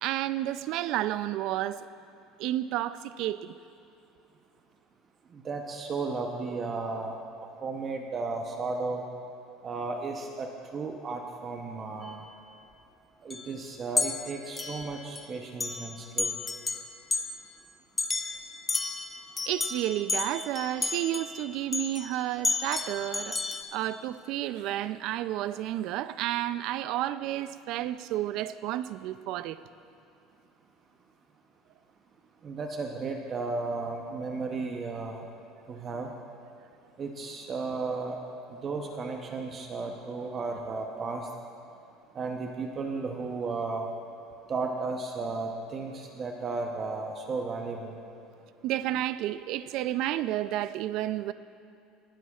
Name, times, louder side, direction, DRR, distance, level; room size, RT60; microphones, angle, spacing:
voice 1, 0.0-1.9 2.4-3.5 19.5-29.6 48.6-51.3, right 13 dB, 55° right, 14 dB, 0.4 m, -31 dB
voice 2, 5.3-7.2 7.6-9.0 9.6-10.5 10.7-12.2 13.2-16.4 32.4-35.3 35.7-36.1 37.0-38.2 38.5-41.3 42.1-43.9 44.5-48.0, right 3 dB, 30° right, 3 dB, 0.7 m, -34 dB
sound 1, 12.0-12.1 13.3-13.5 14.0-15.2 15.6-15.9 16.2-17.4 18.0-22.1 22.4-23.6, left 3 dB, 15° left, 0.5 m, -32 dB
19.0 x 12.5 x 2.4 m, 2.6 s
cardioid pair, 150°, 0 cm